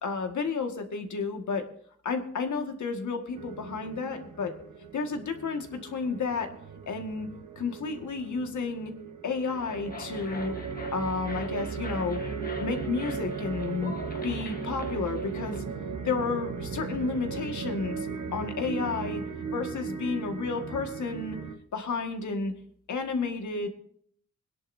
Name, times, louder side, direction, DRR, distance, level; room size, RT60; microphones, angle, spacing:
voice 1, 0.0-1.7 2.0-4.5 4.9-6.5 6.9-7.3 7.6-8.9 9.2-10.5 10.9-12.2 12.6-13.9 14.2-15.6 16.0-18.1 18.3-19.2 19.5-21.4 21.7-22.5 22.9-23.7, left 4 dB, 75° left, 5 dB, 1.9 m, -31 dB
sound 1, 3.4-21.6, right 5 dB, 75° right, 1.4 m, -37 dB
sound 2, 9.4-15.6, left 3 dB, 30° left, 1.3 m, -44 dB
23.5 x 10.5 x 2.7 m, 0.63 s
wide cardioid pair, 170°, 30 cm